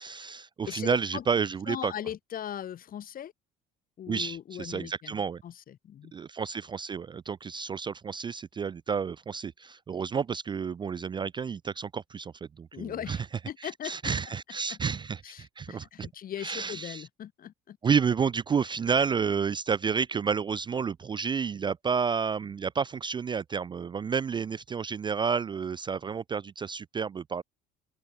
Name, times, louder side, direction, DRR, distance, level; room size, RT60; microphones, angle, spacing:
voice 1, 0.0-1.9 4.1-5.4 6.1-13.3 13.6-16.1 16.4-17.0 17.8-27.4, right 6 dB, 25° right, 0.3 m, -30 dB
voice 2, 0.7-1.2 1.7-3.3 4.0-6.1 12.7-14.1 14.7-14.8 15.2-17.8, left 10 dB, 50° left, 1.9 m, -39 dB
open air
supercardioid pair, 95°, 19 cm